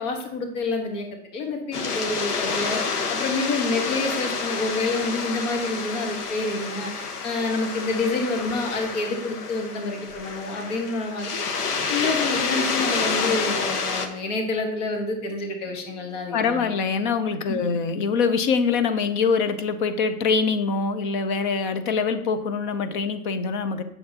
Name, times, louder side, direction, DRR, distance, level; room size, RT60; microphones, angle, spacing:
voice 1, 0.0-2.8 3.1-6.9 7.2-11.4 11.9-16.7 17.5-17.6, left 3 dB, 50° left, 3 dB, 1.6 m, -28 dB
sound 1, 1.7-14.1, left 5 dB, 80° left, 1.1 m, -28 dB
voice 2, 16.3-23.8, left 5 dB, 35° left, 11 dB, 0.5 m, -24 dB
8.5 x 6.7 x 2.8 m, 0.82 s
hypercardioid pair, 130°, 45 cm